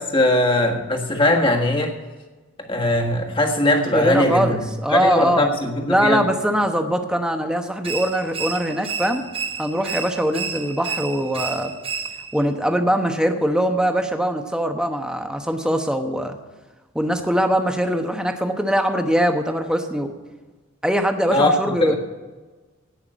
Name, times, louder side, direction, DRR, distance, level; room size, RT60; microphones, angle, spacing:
voice 1, 0.0-1.9 2.6-4.6 4.9-6.2 21.3-22.0, left 1 dB, 25° left, 1 dB, 1.6 m, -20 dB
voice 2, 3.9-5.5 5.9-9.2 9.6-11.7 12.3-16.4 16.9-20.1 20.8-22.0, equal, 5° right, 5 dB, 1.0 m, -22 dB
sound 1, 7.8-12.5, right 6 dB, 25° right, 0.7 m, -31 dB
17.5 x 5.9 x 7.9 m, 1.3 s
head